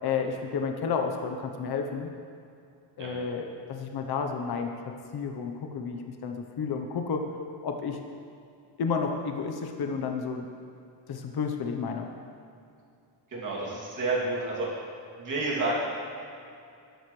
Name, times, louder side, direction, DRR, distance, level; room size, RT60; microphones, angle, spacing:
voice 1, 0.0-2.1 3.0-4.7 5.1-7.2 7.6-8.0 8.8-10.5 11.1-12.1, left 5 dB, 55° left, 4 dB, 1.0 m, -31 dB
voice 2, 13.3-14.7 15.2-15.8, right 2 dB, 40° right, -5 dB, 2.7 m, -29 dB
13.0 x 11.0 x 3.3 m, 2.5 s
wide cardioid pair, 155°, 45 cm